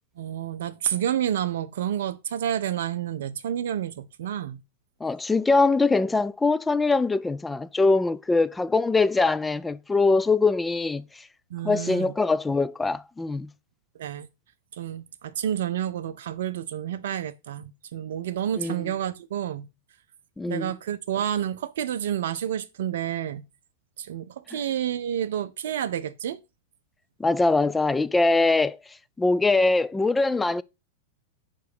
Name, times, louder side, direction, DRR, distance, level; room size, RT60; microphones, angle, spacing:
voice 1, 0.2-4.6 11.5-12.1 13.9-14.3 14.8-19.7 20.5-23.5 24.0-26.4, right 10 dB, 60° right, 0.5 m, -29 dB
voice 2, 5.0-11.2 11.6-13.5 18.6-18.9 20.4-20.7 27.2-28.8 29.2-30.6, left 3 dB, 10° left, 0.3 m, -22 dB
5.2 x 4.7 x 4.9 m
figure-of-eight pair, 95°, 0 cm